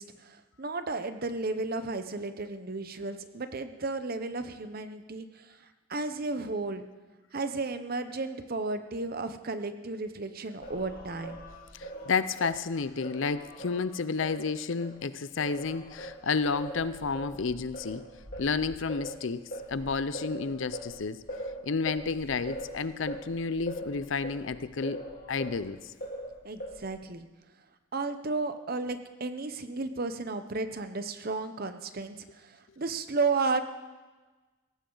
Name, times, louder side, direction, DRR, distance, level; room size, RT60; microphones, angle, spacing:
voice 1, 0.0-5.6 5.9-6.8 7.3-11.5 26.4-27.3 27.9-33.6, right 3 dB, 45° right, 9 dB, 0.8 m, -33 dB
Singing, 10.6-15.0 15.4-25.7 26.0-27.0, equal, 45° left, 2.1 m, -42 dB
voice 2, 11.7-18.1 18.4-21.3 21.6-25.9, left 4 dB, 60° left, 14 dB, 0.6 m, -31 dB
17.5 x 15.5 x 3.9 m, 1.3 s
head